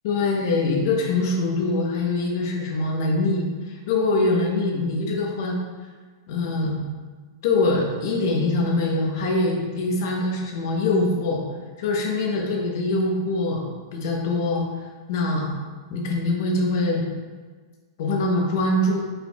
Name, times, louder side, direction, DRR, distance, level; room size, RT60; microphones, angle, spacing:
voice 1, 0.0-5.6 6.3-6.8 7.4-11.4 11.8-13.7 13.9-14.6 15.1-15.5 15.9-17.0 18.0-19.0, left 2 dB, 45° left, 0 dB, 0.9 m, -23 dB
5.1 x 4.2 x 2.3 m, 1.4 s
supercardioid pair, 175°, 2 cm